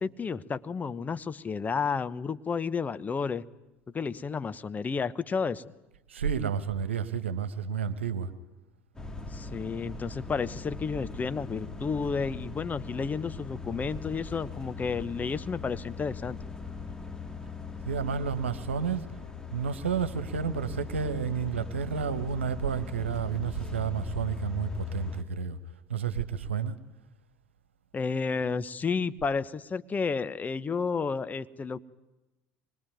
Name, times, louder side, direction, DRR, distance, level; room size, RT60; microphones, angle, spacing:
voice 1, 0.0-3.4 3.9-5.6 9.3-16.4 27.9-31.8, left 5 dB, 25° left, 13 dB, 1.0 m, -31 dB
voice 2, 6.1-8.3 17.8-19.1 19.5-25.6 25.9-26.8, right 7 dB, 80° right, 12 dB, 1.4 m, -31 dB
sound 1, 8.9-25.2, left 5 dB, 10° left, 2.7 m, -40 dB
24.5 x 22.0 x 9.5 m, 1.0 s
figure-of-eight pair, 70°, 6 cm